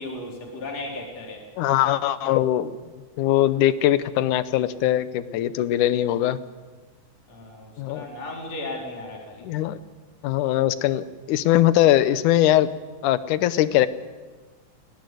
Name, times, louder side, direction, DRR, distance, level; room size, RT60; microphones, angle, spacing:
voice 1, 0.0-1.4 7.3-9.5, left 2 dB, 55° left, -1 dB, 5.2 m, -35 dB
voice 2, 1.6-2.7 3.2-6.4 7.8-8.1 9.4-9.8 10.2-12.7 13.0-13.9, left 13 dB, 85° left, 14 dB, 2.4 m, -21 dB
20.0 x 18.0 x 9.3 m, 1.3 s
omnidirectional pair, 3.5 m